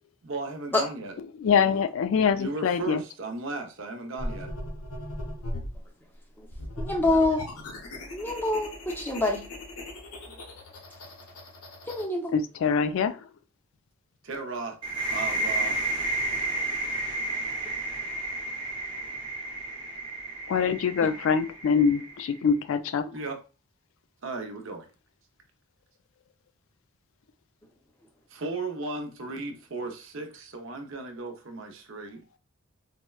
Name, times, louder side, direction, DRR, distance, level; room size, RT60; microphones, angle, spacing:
voice 1, 0.2-1.1 1.7-1.9 2.3-4.5 14.2-14.8 15.1-15.8 23.1-23.4 24.2-24.9 28.3-32.2, right 3 dB, 60° right, 0.7 m, -36 dB
voice 2, 1.4-3.0 12.3-13.2 20.5-23.1, left 6 dB, 65° left, 0.3 m, -24 dB
sound 1, 4.2-5.8 6.5-12.0, left 1 dB, 85° left, 0.9 m, -38 dB
voice 3, 6.8-7.4 8.1-9.4 11.9-12.3 21.0-21.1, left 2 dB, 10° left, 0.5 m, -26 dB
sound 2, 14.8-22.4, right 2 dB, 20° right, 0.8 m, -31 dB
4.2 x 2.1 x 2.3 m
head